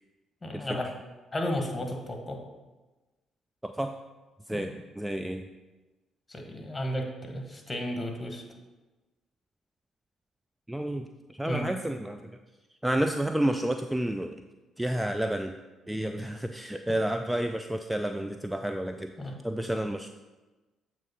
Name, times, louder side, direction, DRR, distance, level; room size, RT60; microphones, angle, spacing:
voice 1, 0.4-0.9 1.3-2.4 4.5-4.7 6.3-8.4 11.4-11.7 19.2-19.4, left 1 dB, 25° left, 3 dB, 1.4 m, -33 dB
voice 2, 3.6-3.9 4.5-5.5 10.7-12.4 12.8-14.4 14.8-15.6 15.9-19.1 19.4-20.1, right 1 dB, 10° right, 7 dB, 0.3 m, -30 dB
7.4 x 3.1 x 5.5 m, 1.2 s
hypercardioid pair, 55°, 0 cm